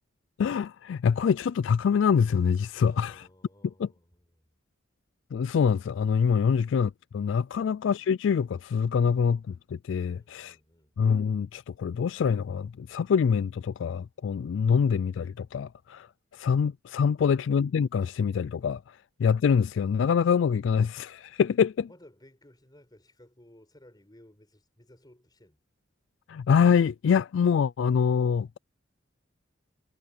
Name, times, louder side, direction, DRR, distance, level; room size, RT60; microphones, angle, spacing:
voice 1, 0.4-3.2 3.8-3.9 5.3-10.6 11.0-21.9 26.3-28.6, left 6 dB, 70° left, 0.3 m, -25 dB
voice 2, 2.9-4.6 7.5-7.8 9.1-9.2 10.1-11.0 17.2-17.4 21.9-25.6, left 1 dB, 20° left, 4.9 m, -57 dB
head